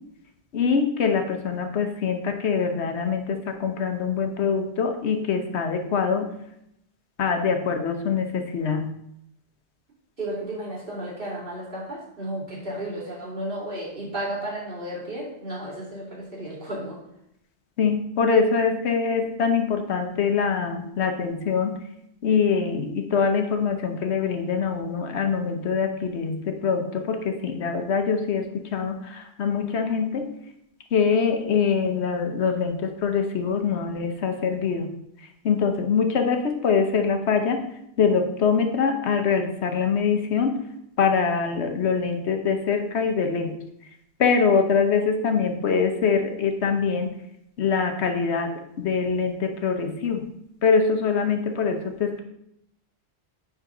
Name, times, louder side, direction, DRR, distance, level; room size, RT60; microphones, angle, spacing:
voice 1, 0.5-6.3 7.2-8.9 17.8-21.8 22.2-30.3 30.9-34.9 35.2-37.6 38.0-40.6 41.0-43.6 44.2-47.1 47.6-50.3 50.6-52.2, left 5 dB, 75° left, 5 dB, 1.1 m, -24 dB
voice 2, 10.2-17.0, right 1 dB, 50° right, -6 dB, 2.7 m, -33 dB
9.9 x 3.9 x 3.8 m, 0.77 s
omnidirectional pair, 1.2 m